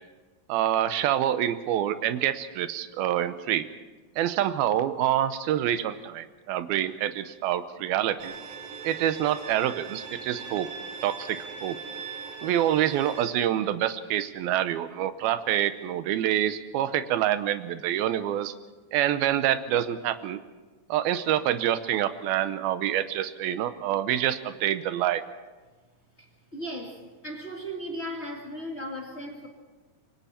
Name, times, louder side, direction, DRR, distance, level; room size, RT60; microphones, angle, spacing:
voice 1, 0.5-3.7 4.2-8.3 8.8-10.7 11.0-11.8 12.4-18.5 18.9-20.4 20.9-25.2, right 11 dB, 90° right, 11 dB, 2.8 m, -26 dB
Bowed string instrument, 8.2-13.2, right 5 dB, 70° right, 3.4 m, -40 dB
voice 2, 26.5-29.5, equal, 20° left, -1 dB, 2.0 m, -36 dB
26.5 x 23.5 x 4.4 m, 1.2 s
omnidirectional pair, 4.2 m